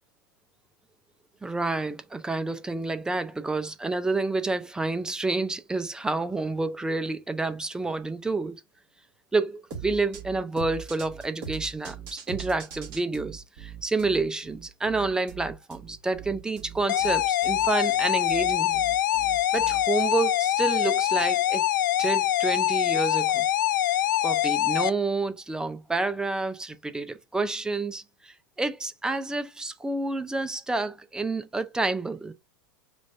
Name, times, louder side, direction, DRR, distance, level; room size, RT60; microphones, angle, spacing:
voice 1, 1.4-8.6 9.3-18.8 19.5-21.7 22.0-23.5 24.2-32.3, right 3 dB, 5° right, 0.5 m, -29 dB
sound 1, 9.7-20.0, right 8 dB, 45° right, 2.2 m, -41 dB
sound 2, 16.9-24.9, left 12 dB, 65° left, 0.4 m, -24 dB
5.1 x 2.5 x 3.3 m
figure-of-eight pair, 95°, 11 cm